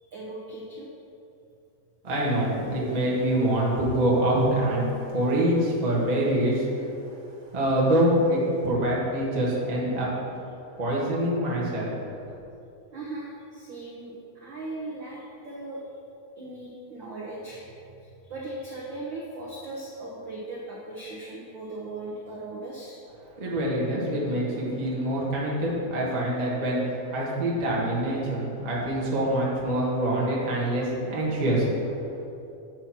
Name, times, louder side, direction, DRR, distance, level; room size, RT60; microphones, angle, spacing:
voice 1, 0.0-0.9 12.9-15.8 16.3-23.0, right 2 dB, 80° right, -5 dB, 1.0 m, -38 dB
voice 2, 2.0-6.7 7.5-10.1 10.8-12.0 23.4-31.7, right 1 dB, 35° right, -5 dB, 0.6 m, -25 dB
8.6 x 4.4 x 5.9 m, 2.6 s
omnidirectional pair, 3.7 m